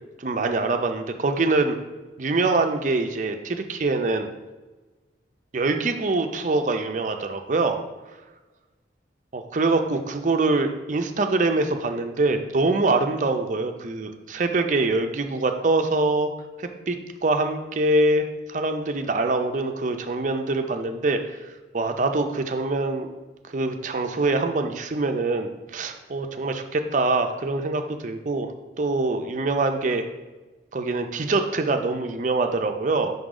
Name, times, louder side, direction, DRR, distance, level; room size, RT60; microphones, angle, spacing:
voice 1, 0.2-1.8 2.2-4.3 5.5-7.8 9.3-16.3 16.6-17.0 17.2-21.2 21.7-23.1 23.5-30.0 30.7-33.1, right 3 dB, 40° right, 6 dB, 0.5 m, -24 dB
5.4 x 3.9 x 4.9 m, 1.2 s
head